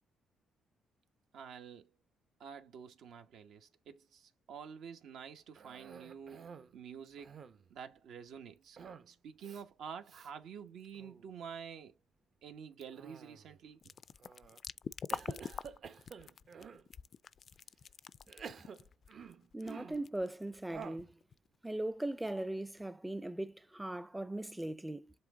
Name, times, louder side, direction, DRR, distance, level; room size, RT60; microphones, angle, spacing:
voice 1, 1.3-1.9 2.4-7.4 7.7-8.8 9.1-11.9 12.4-13.8, right 7 dB, 80° right, 1.1 m, -49 dB
Cough, 5.6-6.7 7.1-7.7 8.8-9.1 9.4-9.6 10.1-10.3 10.8-11.3 12.8-13.6 14.2-14.6 15.1-16.9 17.5-17.6 18.3-20.1 20.7-21.1, right 6 dB, 55° right, 0.8 m, -50 dB
sound 1, 13.8-21.5, left 7 dB, 50° left, 0.4 m, -45 dB
voice 2, 19.5-21.1 21.6-25.1, right 1 dB, 10° right, 0.5 m, -39 dB
7.6 x 3.2 x 3.8 m
cardioid pair, 90°, 0 cm